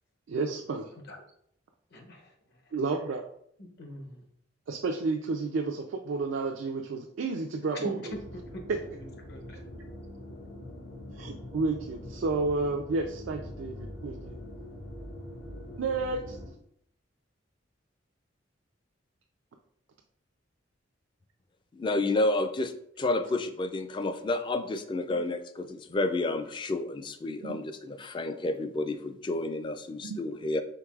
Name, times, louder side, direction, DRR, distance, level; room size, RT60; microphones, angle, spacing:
voice 1, 0.3-0.9 2.7-3.2 4.7-8.2 8.7-8.8 11.2-14.4 15.8-16.4 27.4-27.6 30.0-30.2, right 3 dB, 85° right, 2 dB, 0.4 m, -31 dB
voice 2, 1.9-2.3 3.6-4.2 7.7-8.2 8.5-8.6 9.0-9.6, equal, 60° left, 2 dB, 0.9 m, -41 dB
sound 1, 8.1-16.5, left 1 dB, 90° left, 1.3 m, -43 dB
voice 3, 21.7-22.7 23.0-30.6, left 2 dB, 25° left, 9 dB, 0.3 m, -30 dB
4.6 x 3.7 x 2.3 m, 0.68 s
head